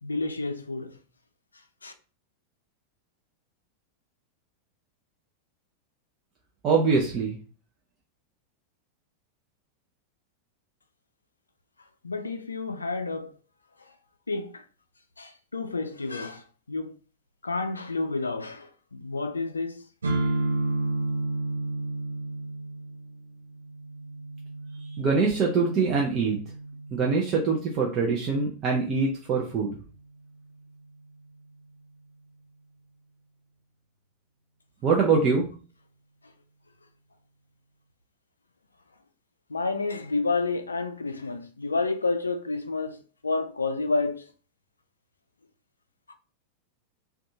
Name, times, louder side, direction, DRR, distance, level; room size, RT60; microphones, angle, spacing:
voice 1, 0.0-1.0 1.8-1.9 12.0-13.4 13.8-13.9 14.3-14.7 15.2-17.0 17.4-19.8 36.2-36.3 39.5-44.3 46.1-46.2, left 3 dB, 75° left, 0.3 m, -30 dB
voice 2, 6.6-7.4 24.8-26.4 26.9-29.8 34.8-35.5, right 4 dB, 30° right, 0.5 m, -24 dB
sound 1, 20.0-27.8, right 2 dB, 75° right, 0.6 m, -32 dB
2.6 x 2.3 x 2.7 m
figure-of-eight pair, 90°, 0 cm